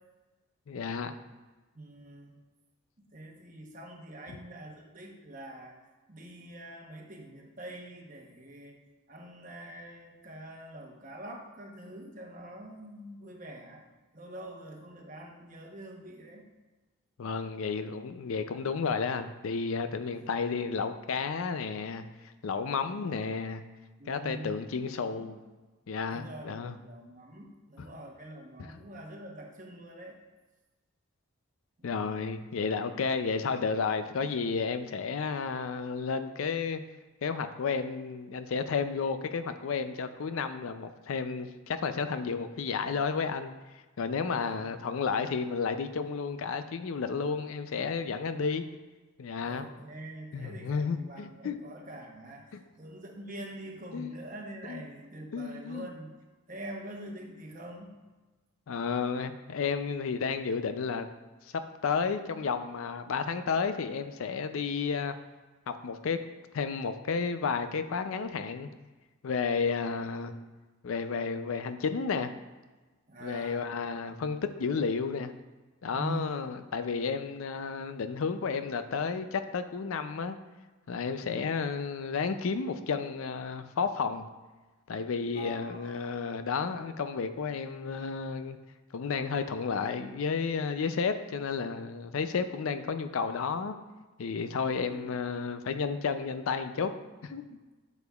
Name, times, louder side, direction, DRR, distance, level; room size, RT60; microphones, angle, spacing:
voice 1, 0.7-1.1 17.2-22.0 22.4-23.6 24.1-25.4 25.9-26.7 31.8-36.8 37.2-43.5 44.0-48.6 49.2-49.7 50.3-51.6 53.9-54.1 54.7-54.8 55.3-55.9 58.7-61.1 61.8-65.1 65.7-66.2 66.5-68.7 69.2-70.3 70.8-72.3 73.2-75.3 75.8-80.4 80.9-84.3 84.9-88.6 88.9-93.8 94.2-96.9 97.2-97.4, left 5 dB, 70° left, 10 dB, 0.4 m, -32 dB
voice 2, 1.7-2.4 3.0-5.8 6.1-8.8 9.1-13.8 14.1-16.5 19.9-20.3 22.8-23.2 24.0-24.7 25.0-25.3 26.1-30.2 31.8-31.9 44.3-44.9 48.3-48.4 48.7-48.8 49.4-56.1 56.5-57.9 73.1-73.7 75.9-76.4 85.3-86.0 94.7-95.1, right 1 dB, 35° right, 1 dB, 0.9 m, -45 dB
8.0 x 6.9 x 2.3 m, 1.2 s
head